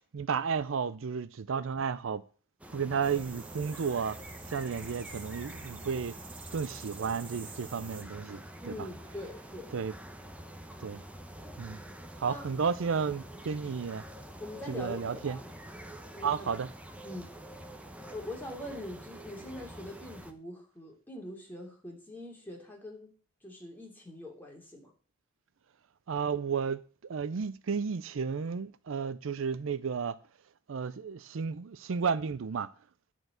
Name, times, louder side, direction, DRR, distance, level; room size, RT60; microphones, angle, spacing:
voice 1, 0.1-2.2 2.7-4.2 4.5-6.1 6.5-8.4 8.7-8.9 9.7-9.9 10.8-11.0 11.6-11.8 12.2-14.0 14.7-15.4 16.2-16.7 26.1-30.2 30.7-32.7, right 6 dB, 70° right, 0.5 m, -32 dB
sound 1, 2.6-20.3, right 1 dB, 5° right, 0.9 m, -47 dB
sound 2, 3.0-8.0, right 4 dB, 25° right, 1.5 m, -48 dB
voice 2, 8.6-9.7 12.3-12.5 14.4-15.5 16.1-16.5 17.0-17.3 18.1-23.1 23.4-24.9, left 1 dB, 10° left, 2.8 m, -43 dB
11.0 x 4.6 x 7.9 m
head